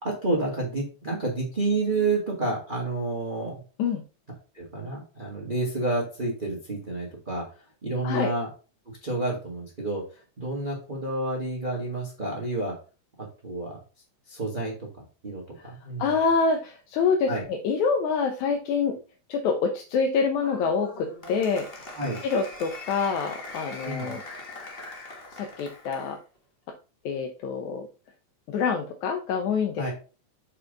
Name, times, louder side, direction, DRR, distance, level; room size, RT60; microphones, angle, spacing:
voice 1, 0.0-3.5 4.5-7.4 7.8-8.5 9.0-10.0 10.4-12.7 13.4-13.8 14.3-14.7 15.2-15.4 15.8-16.1 17.3-17.4 22.0-22.2 23.8-24.2 29.8-29.9, right 2 dB, 20° right, -2 dB, 1.5 m, -29 dB
voice 2, 16.0-18.9 19.3-21.9 22.2-24.2 25.3-26.2 27.1-27.9 28.5-29.8, left 5 dB, 80° left, 3 dB, 2.3 m, -26 dB
Applause, 20.4-26.2, left 2 dB, 30° left, 1.2 m, -41 dB
6.7 x 4.2 x 5.2 m, 0.34 s
omnidirectional pair, 3.4 m